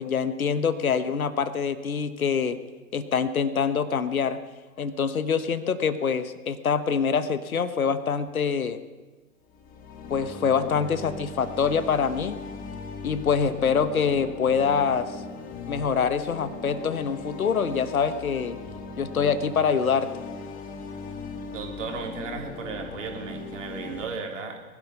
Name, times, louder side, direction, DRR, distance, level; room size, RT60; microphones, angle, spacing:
voice 1, 0.0-2.6 2.9-4.4 4.8-8.8 10.1-12.4 13.0-15.2 15.7-18.6 19.0-20.1, left 6 dB, 70° left, 13 dB, 1.2 m, -25 dB
sound 1, 9.5-24.1, left 4 dB, 20° left, 1.5 m, -39 dB
voice 2, 21.5-24.6, right 4 dB, 55° right, 3 dB, 3.0 m, -35 dB
20.0 x 12.0 x 5.6 m, 1.2 s
figure-of-eight pair, 115°, 44 cm